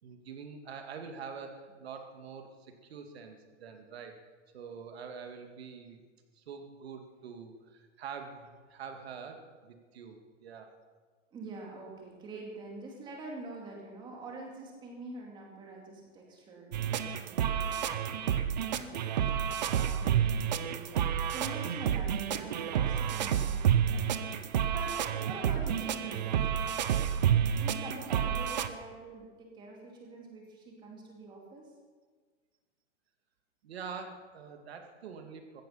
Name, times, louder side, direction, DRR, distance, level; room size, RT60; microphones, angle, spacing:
voice 1, 0.0-4.2 4.5-6.0 6.3-10.7 33.6-35.6, right 6 dB, 55° right, 5 dB, 2.4 m, -45 dB
voice 2, 11.3-19.4 19.7-24.3 24.7-26.8 27.3-31.7, right 2 dB, 10° right, -1 dB, 2.4 m, -46 dB
sound 1, 16.7-28.7, right 9 dB, 35° right, 0.6 m, -30 dB
15.5 x 14.0 x 5.8 m, 1.5 s
hypercardioid pair, 170°, 38 cm